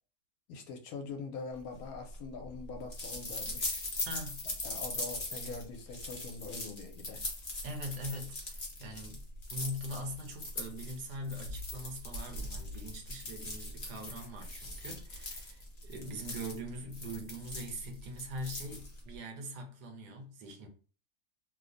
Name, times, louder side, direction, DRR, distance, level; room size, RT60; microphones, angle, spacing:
voice 1, 0.5-3.8 4.4-7.2, left 4 dB, 70° left, 1.0 m, -43 dB
sound 1, 1.7-19.2, left 2 dB, 35° left, 0.7 m, -41 dB
voice 2, 4.0-4.4 7.6-9.2 9.5-20.7, equal, 80° right, 1.3 m, -42 dB
3.0 x 2.0 x 3.7 m
omnidirectional pair, 1.7 m